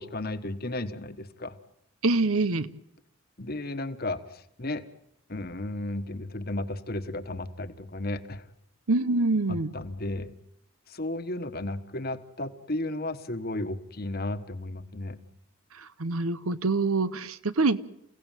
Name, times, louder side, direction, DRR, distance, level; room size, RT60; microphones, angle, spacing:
voice 1, 0.0-1.6 3.4-4.8 5.3-8.5 9.5-10.3 10.9-15.2, left 2 dB, 45° left, 10 dB, 1.4 m, -34 dB
voice 2, 2.0-2.7 8.9-9.7 15.8-17.8, right 3 dB, 85° right, 15 dB, 1.0 m, -25 dB
28.5 x 17.0 x 9.1 m, 0.77 s
head